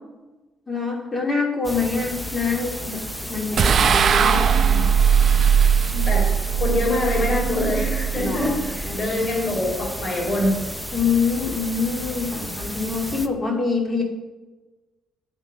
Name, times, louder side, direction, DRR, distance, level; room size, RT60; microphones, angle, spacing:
voice 1, 0.7-3.0 3.3-4.9 5.9-6.1 8.1-9.2 10.9-14.0, left 4 dB, 20° left, 0 dB, 2.9 m, -25 dB
sound 1, 1.6-13.3, equal, ahead, 0.8 m, -33 dB
sound 2, 3.6-8.9, right 7 dB, 55° right, 0.6 m, -19 dB
voice 2, 6.1-10.6, left 1 dB, 40° left, -1 dB, 3.6 m, -24 dB
11.0 x 8.4 x 5.2 m, 1.2 s
cardioid pair, 90°, 0 cm